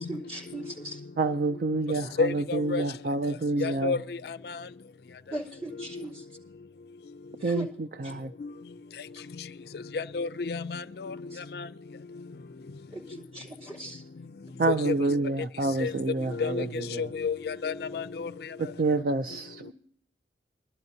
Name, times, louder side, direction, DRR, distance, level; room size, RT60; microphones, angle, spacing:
voice 1, 0.0-1.0 5.3-6.2 7.4-7.7 8.0-8.2 11.3-11.4 12.9-14.0 19.6-19.7, right 1 dB, 35° right, 3.5 m, -39 dB
voice 2, 1.2-3.9 7.4-8.3 14.6-17.1 18.6-19.7, right 3 dB, 50° right, 0.4 m, -28 dB
voice 3, 2.2-2.8 3.6-4.7 5.8-6.1 8.4-8.5 9.4-9.5 9.7-11.7 12.1-12.2 14.7-15.1 15.8-18.7, left 5 dB, 60° left, 0.4 m, -32 dB
22.5 x 12.0 x 2.7 m
head